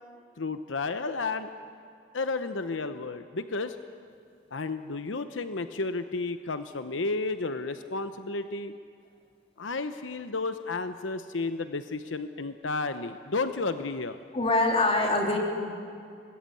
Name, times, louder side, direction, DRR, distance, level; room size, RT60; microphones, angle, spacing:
voice 1, 0.4-1.5 2.1-3.8 4.5-8.7 9.6-14.2, left 3 dB, 85° left, 9 dB, 0.9 m, -32 dB
voice 2, 14.3-15.4, left 2 dB, 30° left, 1 dB, 3.4 m, -24 dB
24.5 x 20.5 x 9.2 m, 2.3 s
head